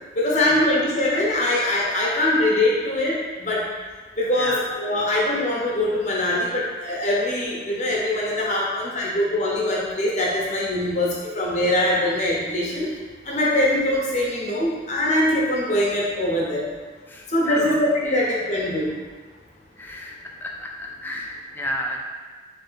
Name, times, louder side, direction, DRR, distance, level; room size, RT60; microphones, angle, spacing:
voice 1, 0.2-3.6 4.2-12.9 13.2-16.7 17.3-18.9, left 1 dB, 40° left, -4 dB, 0.9 m, -22 dB
voice 2, 17.1-17.8 18.0-18.2 19.8-22.0, left 1 dB, 10° left, -1 dB, 0.4 m, -33 dB
4.0 x 3.2 x 3.9 m, 1.4 s
head